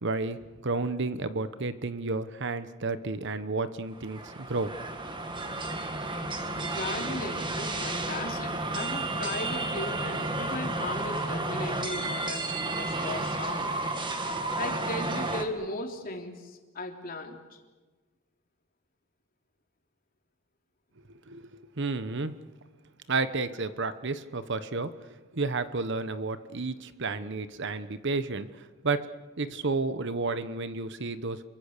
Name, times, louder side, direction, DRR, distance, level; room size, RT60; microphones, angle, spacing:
voice 1, 0.0-4.7 21.3-22.5 23.1-24.9 25.3-29.1 29.4-31.4, right 3 dB, 60° right, 12 dB, 1.1 m, -31 dB
sound 1, 3.9-15.4, right 2 dB, 25° right, 2.1 m, -32 dB
voice 2, 6.6-13.8 14.3-17.4, left 2 dB, 45° left, 2 dB, 3.5 m, -37 dB
29.0 x 23.5 x 6.8 m, 1.3 s
head